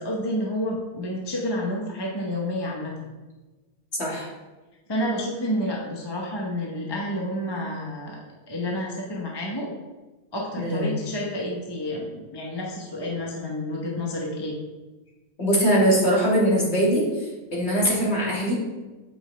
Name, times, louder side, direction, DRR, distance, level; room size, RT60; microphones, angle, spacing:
voice 1, 0.0-3.1 4.9-8.2 8.5-9.7 10.3-14.5, left 1 dB, 20° left, -2 dB, 0.8 m, -29 dB
voice 2, 10.6-10.9 15.4-18.5, equal, 45° left, -5 dB, 2.3 m, -22 dB
8.0 x 5.4 x 3.3 m, 1.2 s
omnidirectional pair, 1.5 m